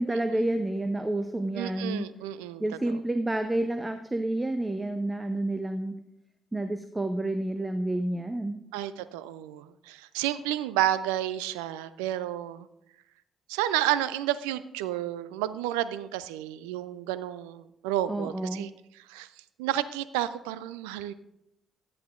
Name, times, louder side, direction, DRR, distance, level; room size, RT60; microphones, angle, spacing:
voice 1, 0.0-2.1 2.6-6.0 6.5-8.6 18.1-18.7, right 1 dB, 20° right, 9 dB, 0.6 m, -29 dB
voice 2, 1.5-2.6 8.7-12.7 13.5-18.7 19.0-19.3 19.6-21.1, right 13 dB, 80° right, 15 dB, 0.3 m, -31 dB
10.5 x 10.5 x 2.5 m, 0.84 s
hypercardioid pair, 45°, 0 cm